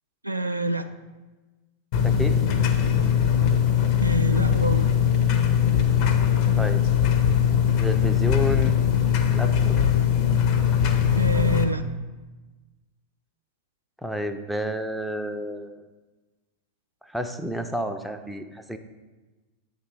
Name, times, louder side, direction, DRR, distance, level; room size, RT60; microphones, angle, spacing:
voice 1, 0.2-0.9 4.0-4.9 11.2-11.8, right 1 dB, 85° right, 7 dB, 0.3 m, -26 dB
sound 1, 1.9-11.6, left 8 dB, 45° left, 0.6 m, -21 dB
voice 2, 2.0-2.4 6.5-6.8 7.8-8.8 9.3-9.8 14.0-15.8 17.0-18.8, equal, ahead, 5 dB, 0.4 m, -30 dB
8.1 x 3.7 x 4.7 m, 1.2 s
figure-of-eight pair, 90°, 0 cm